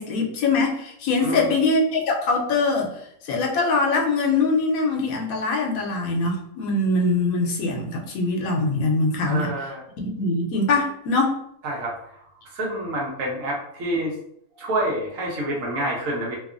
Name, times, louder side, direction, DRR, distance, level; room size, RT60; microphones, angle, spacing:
voice 1, 0.0-2.9 3.2-9.5 10.0-11.4, left 3 dB, 80° left, 1 dB, 1.0 m, -23 dB
voice 2, 1.2-1.5 9.2-9.8 11.6-12.2 12.5-14.1 14.6-16.4, right 1 dB, 70° right, -2 dB, 1.2 m, -28 dB
2.8 x 2.3 x 2.4 m, 0.71 s
omnidirectional pair, 1.5 m